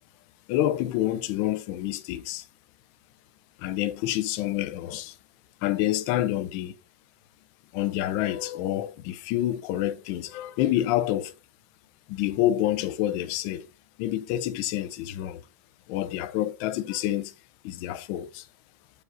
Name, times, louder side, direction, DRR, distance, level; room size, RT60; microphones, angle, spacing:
voice 1, 0.5-2.5 3.6-5.2 5.6-6.8 7.7-11.4 12.1-13.7 14.0-15.4 15.9-17.3 17.6-18.5, left 13 dB, 35° left, 0.6 m, -28 dB
7.8 x 4.9 x 2.5 m
supercardioid pair, 160°, 8 cm